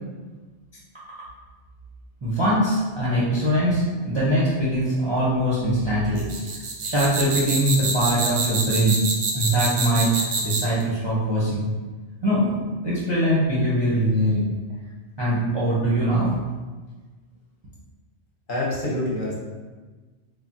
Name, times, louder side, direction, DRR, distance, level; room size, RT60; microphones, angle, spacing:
voice 1, 2.2-6.2 6.8-11.7 12.2-14.5 15.2-16.3, right 1 dB, 35° right, -9 dB, 0.4 m, -22 dB
sound 1, 6.2-10.8, right 4 dB, 90° right, 0.9 m, -26 dB
voice 2, 18.5-19.4, left 1 dB, 55° left, -5 dB, 0.8 m, -26 dB
3.2 x 2.0 x 2.5 m, 1.3 s
omnidirectional pair, 1.1 m